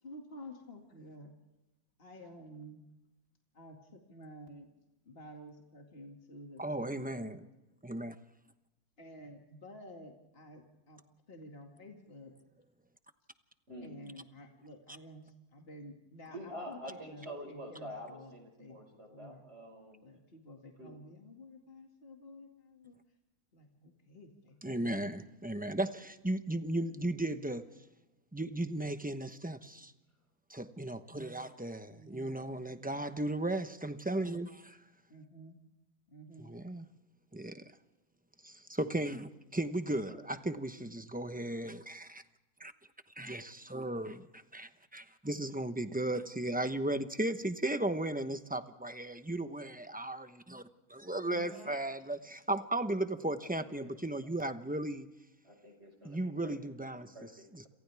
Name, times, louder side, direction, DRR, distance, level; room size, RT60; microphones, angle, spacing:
voice 1, 0.0-1.3 2.0-2.8 3.5-4.7 5.1-6.6 6.9-7.4 9.0-11.0 11.3-12.3 13.8-18.3 18.6-19.4 20.0-23.0 23.5-25.2 31.9-32.4 35.1-35.6 36.1-36.6 51.2-52.2, left 1 dB, 40° left, 2.5 m, -51 dB
voice 2, 6.6-7.4 7.8-8.2 24.6-27.7 28.3-29.9 30.5-34.8 36.4-36.8 37.3-37.6 38.4-42.2 42.6-42.7 43.2-50.6 50.9-55.1 56.0-57.7, right 1 dB, 5° right, 0.8 m, -36 dB
voice 3, 13.7-14.0 16.3-20.0 20.8-21.0 40.0-40.2 53.6-54.0 54.2-54.3 55.4-56.5 56.8-57.7, equal, 45° right, 5.6 m, -47 dB
29.5 x 28.0 x 3.5 m
omnidirectional pair, 1.6 m